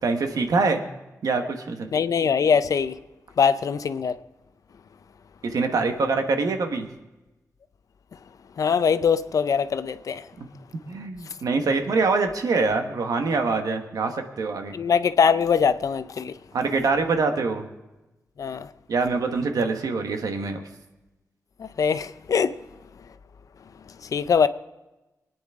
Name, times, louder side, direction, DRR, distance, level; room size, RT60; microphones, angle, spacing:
voice 1, 0.0-0.8 1.2-1.9 5.4-6.9 10.9-14.7 16.5-17.6 18.9-20.6, right 4 dB, 90° right, 1.3 m, -24 dB
voice 2, 1.9-3.0 3.4-4.2 8.6-10.3 14.7-16.4 18.4-18.7 21.6-22.6 23.9-24.5, left 6 dB, 70° left, 0.6 m, -22 dB
25.0 x 9.5 x 3.6 m
wide cardioid pair, 120°, 6 cm